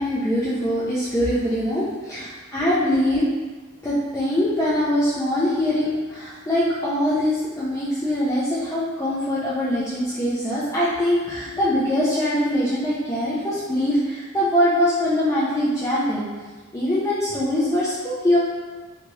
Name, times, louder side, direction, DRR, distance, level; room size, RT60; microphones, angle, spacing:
voice 1, 0.0-3.3 3.8-16.3 16.7-18.4, left 1 dB, 15° left, -9 dB, 0.4 m, -23 dB
2.9 x 2.3 x 3.0 m, 1.3 s
head